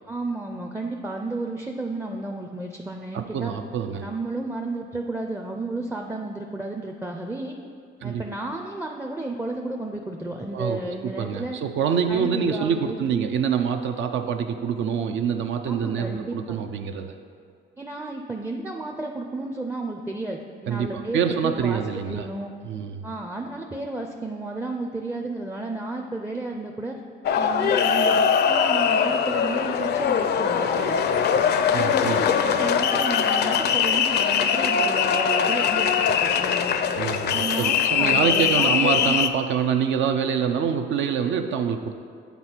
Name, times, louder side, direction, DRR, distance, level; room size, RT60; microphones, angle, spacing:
voice 1, 0.1-3.5 4.0-7.6 8.0-11.6 12.1-13.0 15.7-16.6 17.8-22.5 23.0-27.0 27.4-31.2 31.7-36.8 37.3-39.2, right 2 dB, 10° right, 1 dB, 0.4 m, -32 dB
voice 2, 3.1-4.1 8.0-8.2 10.5-17.1 20.7-22.3 22.7-23.1 31.7-32.3 37.0-41.9, right 7 dB, 70° right, 6 dB, 0.5 m, -26 dB
sound 1, 27.2-39.3, left 7 dB, 55° left, 0.4 m, -22 dB
8.2 x 4.0 x 4.4 m, 2.2 s
cardioid pair, 90°, 20 cm